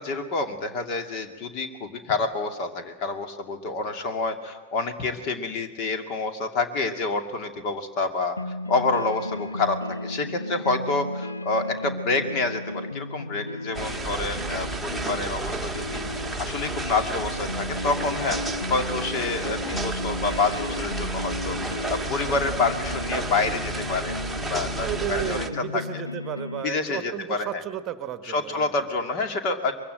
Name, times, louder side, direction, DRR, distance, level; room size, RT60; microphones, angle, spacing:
voice 1, 0.0-8.4 8.7-18.4 18.7-24.1 24.5-25.4 25.7-25.8 26.6-27.5 28.3-29.7, left 3 dB, 40° left, 7 dB, 2.4 m, -28 dB
sound 1, 8.4-26.6, left 2 dB, 80° left, 0.7 m, -34 dB
sound 2, 13.7-25.5, right 3 dB, 5° right, 1.5 m, -32 dB
voice 2, 24.8-28.9, right 11 dB, 30° right, 12 dB, 1.2 m, -33 dB
23.0 x 23.0 x 7.9 m, 1.2 s
figure-of-eight pair, 90°, 0 cm